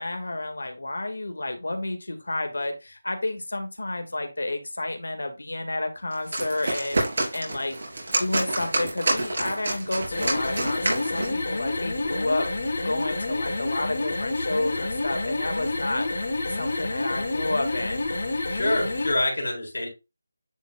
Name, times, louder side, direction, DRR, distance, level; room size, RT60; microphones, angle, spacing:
voice 1, 0.0-7.8 8.2-16.1 16.5-18.1, left 2 dB, 90° left, 6 dB, 1.8 m, -30 dB
sound 1, 6.1-11.4, right 2 dB, 55° right, 3.3 m, -28 dB
sound 2, 10.0-19.2, left 2 dB, 55° left, 2.8 m, -29 dB
voice 2, 18.5-19.9, left 1 dB, 70° left, 0 dB, 3.6 m, -26 dB
10.0 x 4.2 x 2.3 m, 0.25 s
figure-of-eight pair, 170°, 0 cm